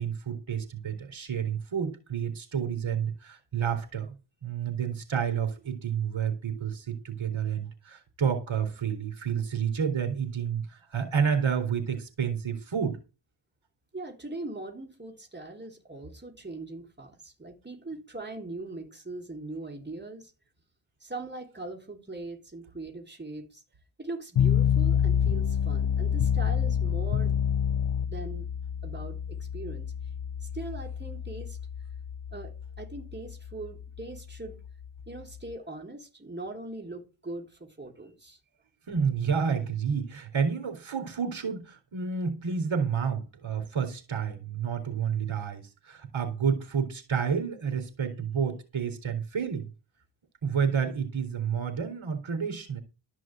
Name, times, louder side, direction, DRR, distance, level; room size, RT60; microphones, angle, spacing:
voice 1, 0.0-4.1 4.4-13.0 38.9-49.7 50.4-52.8, right 7 dB, 70° right, 4.0 m, -30 dB
voice 2, 13.9-20.3 21.0-23.6 24.0-27.4 28.1-28.5 28.8-29.9 30.4-31.6 32.3-34.6 35.1-38.4, right 2 dB, 20° right, 3.7 m, -41 dB
sound 1, 24.4-35.5, left 8 dB, 65° left, 1.0 m, -28 dB
13.0 x 6.2 x 7.7 m
wide cardioid pair, 80°, 48 cm